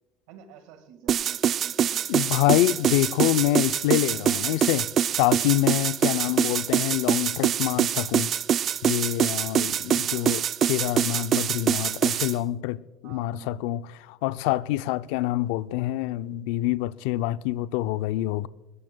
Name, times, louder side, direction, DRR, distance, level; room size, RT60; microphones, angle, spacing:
voice 1, 0.3-2.4 6.2-6.5 10.0-10.3 13.0-13.5, right 8 dB, 80° right, 1.6 m, -48 dB
sound 1, 1.1-12.3, right 9 dB, 45° right, 0.3 m, -24 dB
voice 2, 2.1-4.9 5.2-8.3 8.8-18.5, left 15 dB, 85° left, 0.4 m, -26 dB
21.0 x 18.0 x 2.2 m
supercardioid pair, 115°, 0 cm